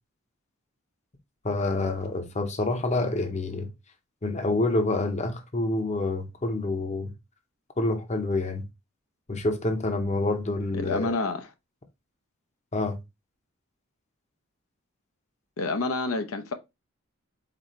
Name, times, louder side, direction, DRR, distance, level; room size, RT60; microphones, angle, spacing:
voice 1, 1.4-3.7 4.2-7.1 7.8-8.6 9.3-11.1 12.7-13.0, left 2 dB, 35° left, 0.7 m, -27 dB
voice 2, 10.7-11.5 15.6-16.5, left 3 dB, 75° left, 0.6 m, -28 dB
4.2 x 4.1 x 3.0 m
head